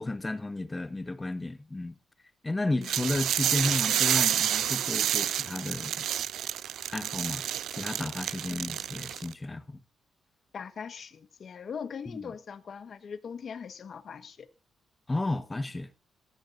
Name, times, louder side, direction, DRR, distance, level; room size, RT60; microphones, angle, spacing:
voice 1, 0.0-1.9 2.4-6.1 6.4-6.5 6.9-9.8 12.1-12.2 15.1-15.9, left 2 dB, 15° left, 1.3 m, -33 dB
sound 1, 2.8-9.3, right 11 dB, 85° right, 0.5 m, -29 dB
voice 2, 8.5-8.9 10.5-14.5, left 6 dB, 50° left, 1.2 m, -41 dB
17.0 x 15.5 x 2.6 m
cardioid pair, 125°, 0 cm